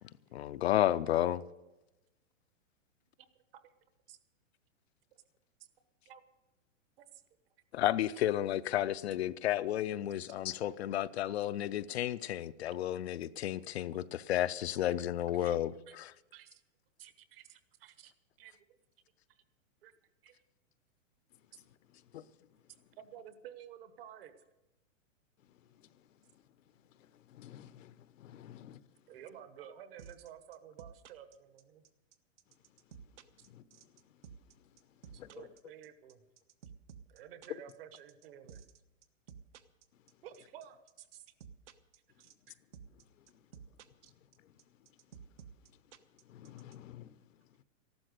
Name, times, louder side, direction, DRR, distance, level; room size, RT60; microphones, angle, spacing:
voice 1, 0.3-1.4 7.7-16.1 22.1-22.2, left 12 dB, 55° left, 0.5 m, -32 dB
voice 2, 3.2-3.7 4.1-4.2 5.1-5.2 6.0-6.2 7.0-7.2 10.3-10.4 15.3-15.6 15.9-16.0 16.3-16.6 17.0-18.1 18.4-18.6 19.3-19.4 19.8-19.9 20.2-20.3 23.0-24.4 29.1-31.8 35.1-36.2 37.1-38.6 40.2-41.3 42.2-42.5 44.0-44.1, right 10 dB, 45° right, 1.4 m, -52 dB
voice 3, 22.1-22.5 25.4-26.4 26.9-28.9 33.4-34.2 34.6-35.5 42.9-43.4 44.4-44.9 45.7-45.8 46.2-47.5, left 12 dB, 75° left, 0.8 m, -52 dB
sound 1, 30.0-46.8, right 7 dB, 65° right, 1.2 m, -53 dB
14.0 x 12.5 x 6.5 m
hypercardioid pair, 160°, 39 cm